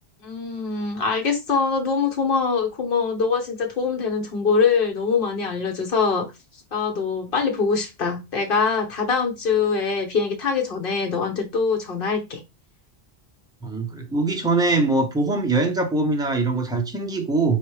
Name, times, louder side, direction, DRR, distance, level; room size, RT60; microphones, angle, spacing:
voice 1, 0.2-6.3 6.7-12.4, left 5 dB, 55° left, 1.2 m, -23 dB
voice 2, 13.6-17.6, right 3 dB, 5° right, 0.6 m, -22 dB
4.0 x 3.3 x 3.1 m
omnidirectional pair, 1.1 m